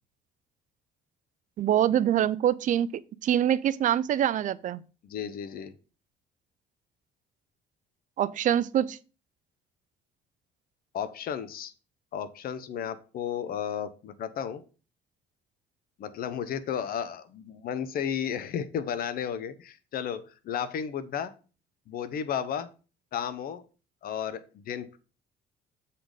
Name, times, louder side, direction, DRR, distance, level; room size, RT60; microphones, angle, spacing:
voice 1, 1.6-2.9 3.2-4.8 8.2-9.0, right 10 dB, 50° right, 0.5 m, -24 dB
voice 2, 5.0-5.7 10.9-11.7 12.1-14.6 16.0-21.3 21.9-22.7 23.1-23.6 24.0-25.0, left 8 dB, 60° left, 0.9 m, -33 dB
7.9 x 4.2 x 5.1 m
cardioid pair, 110°, 17 cm